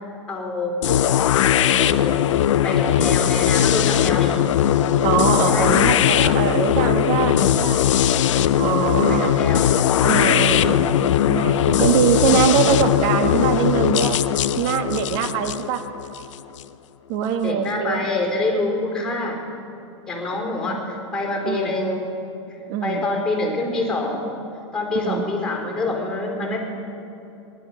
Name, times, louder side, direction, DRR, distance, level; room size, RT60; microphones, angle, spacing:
voice 1, 0.3-0.8 1.4-2.2 2.6-4.5 5.5-5.8 8.8-9.7 17.4-19.4 20.1-22.2 22.8-24.3 24.7-26.6, left 2 dB, 5° left, 0 dB, 4.4 m, -26 dB
sound 1, 0.8-16.6, left 10 dB, 70° left, 0.6 m, -19 dB
voice 2, 5.0-7.8 8.5-9.3 10.0-14.2 14.6-15.8 17.1-18.1 20.6-20.9 21.4-21.8 22.7-23.1 24.9-25.3, right 8 dB, 50° right, 7 dB, 1.3 m, -23 dB
18.5 x 11.5 x 6.3 m, 2.8 s
hypercardioid pair, 120°, 16 cm